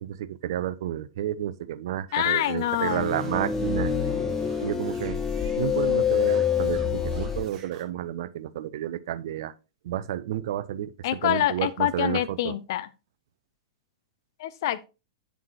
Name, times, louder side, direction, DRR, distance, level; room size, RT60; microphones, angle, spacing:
voice 1, 0.0-3.9 4.6-5.2 5.5-9.5 9.8-12.6, right 12 dB, 55° right, 0.6 m, -31 dB
voice 2, 2.1-3.1 11.0-12.9 14.4-14.9, left 13 dB, 50° left, 0.7 m, -26 dB
sound 1, 2.1-7.8, right 7 dB, 35° right, 1.7 m, -49 dB
sound 2, 2.8-7.5, left 7 dB, 15° left, 0.6 m, -26 dB
8.4 x 7.3 x 2.8 m
figure-of-eight pair, 100°, 3 cm